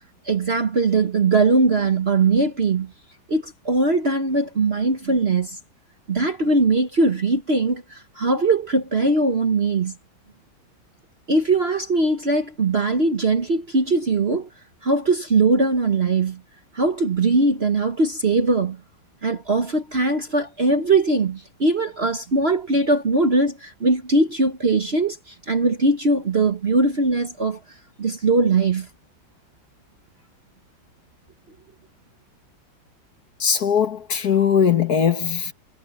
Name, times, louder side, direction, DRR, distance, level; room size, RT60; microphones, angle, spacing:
voice 1, 0.2-2.9 3.3-5.6 6.1-9.9 11.3-14.5 14.8-16.4 16.7-18.8 19.2-27.6 28.0-28.9, right 3 dB, 35° right, 1.2 m, -20 dB
voice 2, 33.4-35.5, left 7 dB, 50° left, 1.9 m, -20 dB
omnidirectional pair, 2.1 m